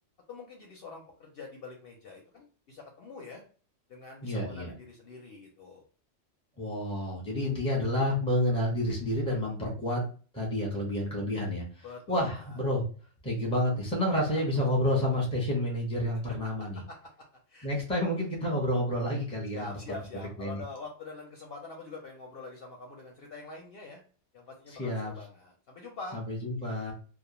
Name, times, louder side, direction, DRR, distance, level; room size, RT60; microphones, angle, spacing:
voice 1, 0.3-3.4 3.9-5.8 11.8-12.6 14.2-14.4 16.9-17.0 17.5-17.7 19.5-24.0 24.3-26.2, left 3 dB, 65° left, 1 dB, 0.7 m, -45 dB
voice 2, 4.2-4.7 6.6-10.0 10.3-12.8 13.2-16.8 17.6-19.6 20.4-20.6 24.8-25.1 26.1-26.9, left 1 dB, 5° left, -2 dB, 0.6 m, -29 dB
2.3 x 2.1 x 2.8 m, 0.40 s
omnidirectional pair, 1.3 m